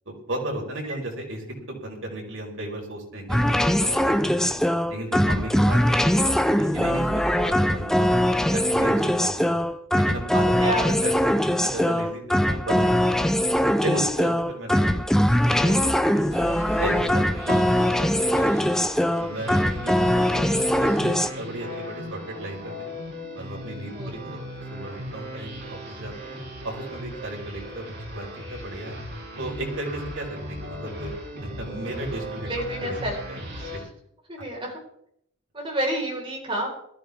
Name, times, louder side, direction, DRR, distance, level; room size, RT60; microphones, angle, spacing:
voice 1, 0.0-4.5 4.9-5.8 6.1-8.1 8.5-9.6 9.9-10.5 10.9-13.4 13.8-15.0 15.4-16.4 16.8-18.7 19.2-20.7 21.0-22.9 23.3-26.4 26.6-29.0 29.4-31.1 31.4-33.0 33.3-33.4 33.7-33.8, right 1 dB, 90° right, 0 dB, 4.7 m, -35 dB
sound 1, 3.3-21.3, equal, 5° left, 0.6 m, -22 dB
voice 2, 10.6-10.9 24.0-24.1 32.5-33.2 33.5-33.7 34.3-34.7 35.5-36.7, right 1 dB, 25° right, -1 dB, 4.8 m, -29 dB
sound 2, 16.3-33.8, equal, 60° right, 5.8 m, -38 dB
20.5 x 14.0 x 3.6 m, 0.71 s
head